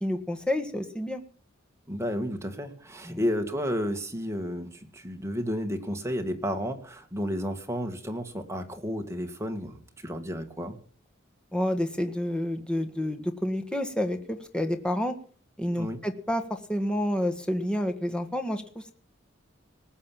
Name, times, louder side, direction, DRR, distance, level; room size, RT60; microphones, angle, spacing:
voice 1, 0.0-1.2 3.1-3.2 11.5-15.1 15.6-18.9, left 1 dB, 5° left, 6 dB, 1.7 m, -29 dB
voice 2, 1.9-10.8 15.7-16.0, equal, 15° right, 5 dB, 2.0 m, -32 dB
19.5 x 7.9 x 7.4 m, 0.44 s
head